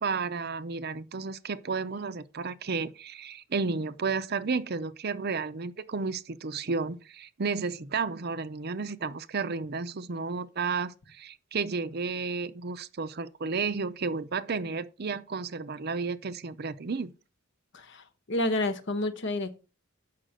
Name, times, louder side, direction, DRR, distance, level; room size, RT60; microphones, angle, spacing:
voice 1, 0.0-17.1, right 4 dB, 50° right, 0.6 m, -32 dB
voice 2, 17.7-19.6, left 1 dB, 60° left, 1.0 m, -30 dB
7.5 x 5.9 x 6.5 m
head